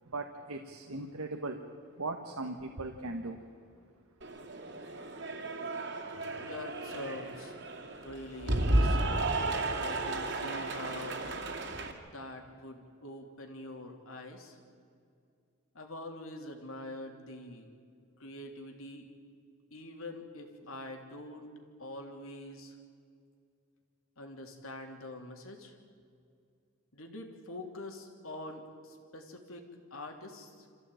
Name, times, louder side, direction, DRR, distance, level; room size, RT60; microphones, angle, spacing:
voice 1, 0.0-1.6 1.9-3.7, right 2 dB, 90° right, 4 dB, 1.5 m, -39 dB
Cheering / Applause, 4.2-11.9, right 2 dB, 55° right, 2.5 m, -33 dB
voice 2, 6.4-7.6 8.0-9.2 9.7-11.2 12.0-14.6 15.7-17.7 18.2-19.0 19.7-21.5 21.8-22.7 24.2-25.7 26.9-30.6, left 1 dB, 75° left, 3 dB, 3.1 m, -45 dB
27.0 x 15.0 x 9.1 m, 2.3 s
head